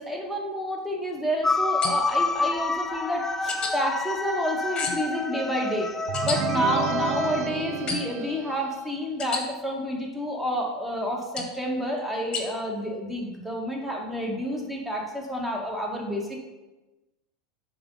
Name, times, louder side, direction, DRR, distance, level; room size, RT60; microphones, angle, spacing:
voice 1, 0.0-5.9 6.2-16.4, equal, 5° right, -1 dB, 1.7 m, -29 dB
sound 1, 1.4-7.5, left 3 dB, 10° left, 0.4 m, -28 dB
sound 2, 1.8-2.2 3.5-3.7 4.7-5.1 6.1-6.4 7.9-8.2 9.2-9.4 11.4-11.6 12.3-12.4, left 5 dB, 30° left, 1.4 m, -31 dB
sound 3, 6.1-8.9, right 11 dB, 50° right, 0.4 m, -31 dB
6.9 x 3.7 x 5.5 m, 1.1 s
hypercardioid pair, 95°, 3 cm